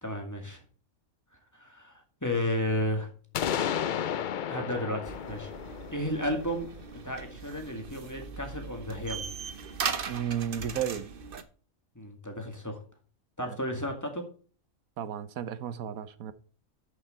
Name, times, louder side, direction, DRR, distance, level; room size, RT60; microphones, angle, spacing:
voice 1, 0.0-0.6 1.5-3.1 4.3-5.5 5.9-6.7 7.0-9.3 12.0-12.8 13.4-14.3, left 1 dB, 15° left, 2.1 m, -33 dB
sound 1, 3.3-7.1, left 9 dB, 65° left, 0.5 m, -33 dB
sound 2, 5.0-11.4, right 5 dB, 45° right, 1.0 m, -39 dB
voice 2, 10.1-11.1 13.5-13.6 15.0-16.3, right 9 dB, 90° right, 1.3 m, -33 dB
11.5 x 6.3 x 4.4 m
omnidirectional pair, 1.4 m